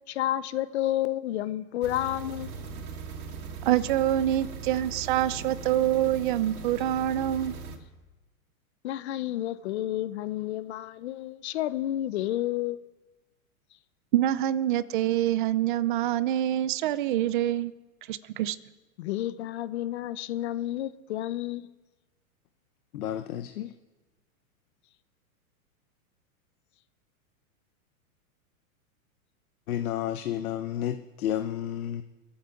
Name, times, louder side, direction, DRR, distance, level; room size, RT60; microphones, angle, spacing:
voice 1, 0.1-2.5 8.8-12.8 19.0-21.7, left 13 dB, 50° left, 0.8 m, -30 dB
sound 1, 1.8-7.8, right 4 dB, 85° right, 2.5 m, -39 dB
voice 2, 3.7-7.5 14.1-17.7 18.1-18.6, right 12 dB, 35° right, 0.5 m, -26 dB
voice 3, 22.9-23.7 29.7-32.0, left 11 dB, 75° left, 1.0 m, -31 dB
22.0 x 8.7 x 7.1 m
supercardioid pair, 160°, 43 cm